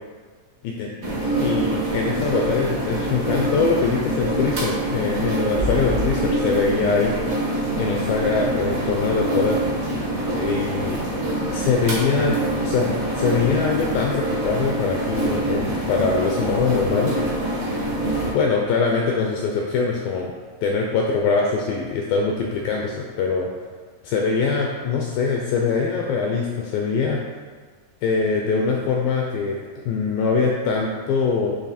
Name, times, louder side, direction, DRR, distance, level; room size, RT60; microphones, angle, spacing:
sound 1, 1.0-18.3, right 1 dB, 75° right, 0.7 m, -25 dB
voice 1, 1.4-7.1 7.5-9.6 10.3-11.0 11.5-12.3 12.6-12.9 13.2-17.2 18.3-20.3 20.6-23.5 24.0-27.2 28.0-29.6 29.9-31.6, left 5 dB, 85° left, -1 dB, 2.0 m, -23 dB
8.8 x 3.2 x 4.1 m, 1.5 s
omnidirectional pair, 4.7 m